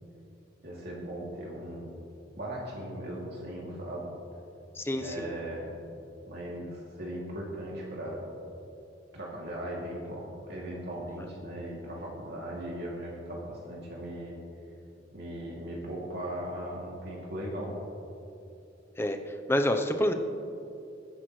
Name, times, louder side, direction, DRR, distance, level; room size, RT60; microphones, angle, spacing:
voice 1, 0.6-1.9 2.4-4.1 5.0-5.7 6.2-8.2 9.1-14.4 15.1-17.8, right 1 dB, 60° right, -4 dB, 2.8 m, -38 dB
voice 2, 4.8-5.3 19.0-19.2 19.5-20.1, left 1 dB, 10° left, 5 dB, 0.8 m, -27 dB
21.5 x 10.5 x 3.3 m, 2.7 s
head